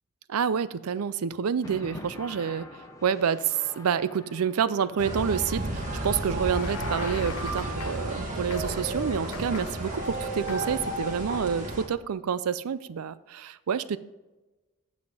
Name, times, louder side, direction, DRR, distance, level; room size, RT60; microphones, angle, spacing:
voice 1, 0.3-2.7 3.0-14.0, right 7 dB, 90° right, 16 dB, 0.4 m, -28 dB
sound 1, 1.6-11.0, left 1 dB, 15° left, 0.8 m, -47 dB
sound 2, 5.0-11.9, right 1 dB, 35° right, 1.6 m, -32 dB
sound 3, 6.2-8.2 8.5-8.9 9.3-9.9 10.5-10.9, left 7 dB, 85° left, 0.5 m, -42 dB
8.2 x 7.4 x 4.9 m, 1.1 s
head